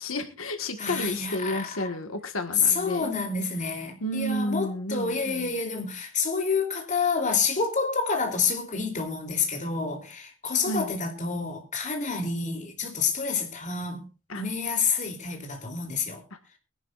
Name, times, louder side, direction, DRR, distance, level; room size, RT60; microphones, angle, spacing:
voice 1, 0.0-3.1 4.0-5.6 10.7-10.9 14.3-14.4 16.3-16.4, left 1 dB, 90° left, 1.6 m, -31 dB
voice 2, 0.8-1.7 2.7-14.1 14.3-16.2, left 5 dB, 40° left, 3.2 m, -28 dB
23.0 x 11.5 x 2.5 m
head